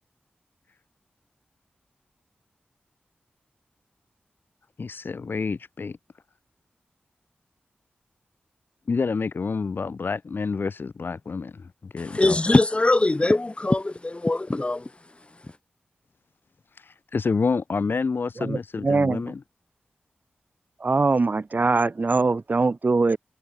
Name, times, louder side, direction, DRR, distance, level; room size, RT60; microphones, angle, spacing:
voice 1, 4.8-6.0 8.9-12.5 16.7-19.4, left 4 dB, 70° left, 5.8 m, -28 dB
voice 2, 12.0-14.9, left 2 dB, 30° left, 5.8 m, -22 dB
voice 3, 18.4-19.2 20.8-23.2, right 3 dB, 55° right, 5.6 m, -22 dB
wide cardioid pair, 60°, 4 cm